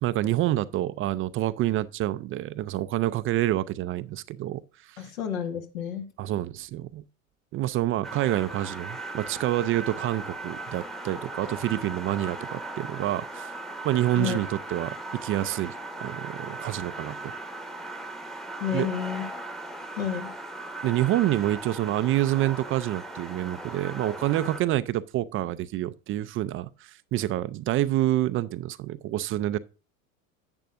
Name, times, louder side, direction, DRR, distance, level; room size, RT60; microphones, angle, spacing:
voice 1, 0.0-5.1 6.2-7.0 7.5-13.5 13.8-17.3 18.7-18.9 20.8-29.6, right 14 dB, 30° right, 0.4 m, -27 dB
voice 2, 5.0-6.1 14.1-14.4 18.6-19.2 20.0-20.3, left 8 dB, 80° left, 1.9 m, -30 dB
sound 1, 8.0-24.6, right 2 dB, ahead, 0.9 m, -38 dB
10.5 x 8.2 x 2.5 m
hypercardioid pair, 90°, 41 cm